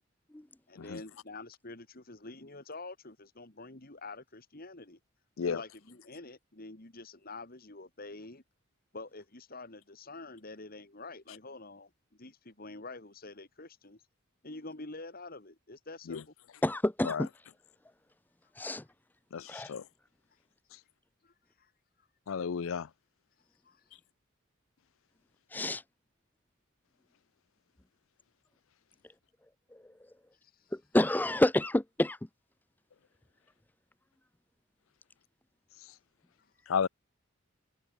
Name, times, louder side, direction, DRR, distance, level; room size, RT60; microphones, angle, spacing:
voice 1, 0.7-5.0 5.4-8.4 8.9-11.9 12.2-14.0 14.4-16.3 21.2-21.7 23.6-23.8 30.4-30.7, left 3 dB, 45° left, 2.2 m, -47 dB
voice 2, 16.6-17.3 18.6-18.8 19.5-19.7 25.5-25.8 29.7-29.8 30.7-32.2, left 1 dB, 10° left, 0.5 m, -28 dB
voice 3, 19.3-19.8 22.3-22.9 36.7-36.9, left 6 dB, 70° left, 0.5 m, -32 dB
head